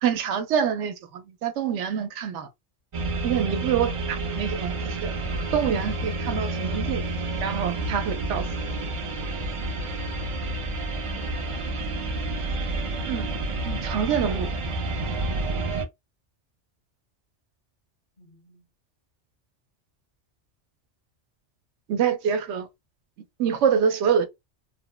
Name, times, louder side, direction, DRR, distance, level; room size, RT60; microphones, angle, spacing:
voice 1, 0.0-2.5 3.2-5.1 5.5-7.0 7.4-8.5 13.1-13.3 13.6-14.5 21.9-22.7 23.4-24.3, right 8 dB, 80° right, 0.9 m, -26 dB
sound 1, 2.9-15.8, right 2 dB, 45° right, 0.4 m, -29 dB
voice 2, 9.9-10.2 11.2-12.8 18.2-18.7, left 1 dB, 45° left, 1.2 m, -54 dB
3.0 x 2.1 x 2.2 m
omnidirectional pair, 1.2 m